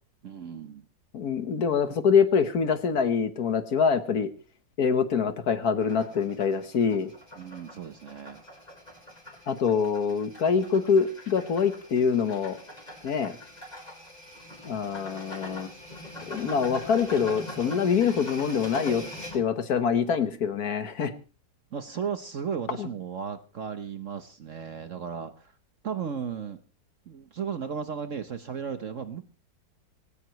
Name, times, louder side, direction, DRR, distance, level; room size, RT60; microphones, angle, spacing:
voice 1, 0.2-0.9 7.4-8.4 21.7-25.5 25.8-26.6 27.1-29.2, right 7 dB, 50° right, 9 dB, 1.1 m, -35 dB
voice 2, 1.1-4.3 4.8-7.1 9.5-12.6 13.0-13.3 14.6-15.7 16.3-19.0 19.3-21.1 22.8-22.9, left 6 dB, 60° left, 10 dB, 1.6 m, -25 dB
sound 1, 5.8-19.4, left 1 dB, 20° left, 4.6 m, -43 dB
19.0 x 17.0 x 3.1 m, 0.33 s
omnidirectional pair, 2.0 m